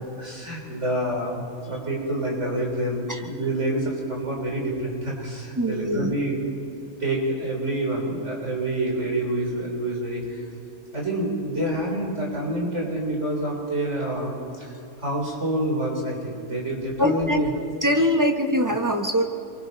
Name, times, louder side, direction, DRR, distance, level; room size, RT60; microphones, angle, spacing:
voice 1, 0.0-6.4 7.0-10.4 10.9-14.7 15.0-17.5, right 1 dB, 50° right, -2 dB, 4.0 m, -27 dB
voice 2, 5.6-6.1 17.0-17.4 17.8-19.2, equal, 15° right, 3 dB, 1.3 m, -22 dB
29.0 x 23.5 x 4.1 m, 2.7 s
omnidirectional pair, 1.6 m